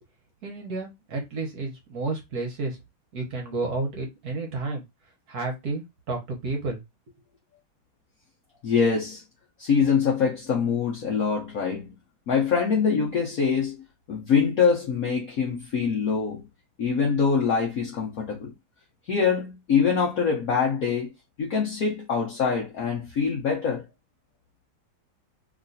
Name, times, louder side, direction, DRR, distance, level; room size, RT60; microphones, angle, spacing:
voice 1, 0.4-2.8 3.1-4.8 5.3-6.8, right 3 dB, 55° right, 1.2 m, -31 dB
voice 2, 8.6-9.2 9.6-11.9 12.3-13.8 14.1-16.4 16.8-18.5 19.1-21.1 21.4-23.8, left 6 dB, 70° left, 0.8 m, -24 dB
3.1 x 3.1 x 2.6 m
omnidirectional pair, 2.3 m